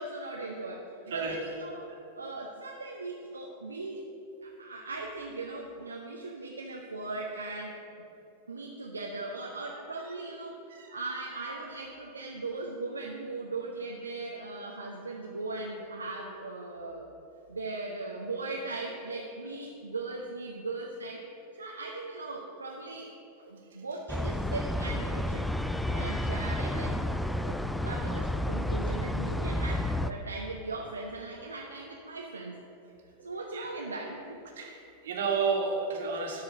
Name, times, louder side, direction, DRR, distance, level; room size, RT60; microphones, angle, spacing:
voice 1, 0.0-1.9 2.1-4.0 4.4-7.8 8.5-10.6 10.9-17.1 17.5-21.3 21.6-23.2 23.4-25.5 25.9-32.6 33.2-34.5, right 3 dB, 75° right, -1 dB, 0.8 m, -38 dB
sound 1, 24.1-30.1, left 1 dB, 5° left, 0.4 m, -31 dB
voice 2, 34.6-36.4, right 5 dB, 60° right, 0 dB, 1.8 m, -31 dB
12.5 x 4.8 x 6.9 m, 3.0 s
figure-of-eight pair, 90°, 0 cm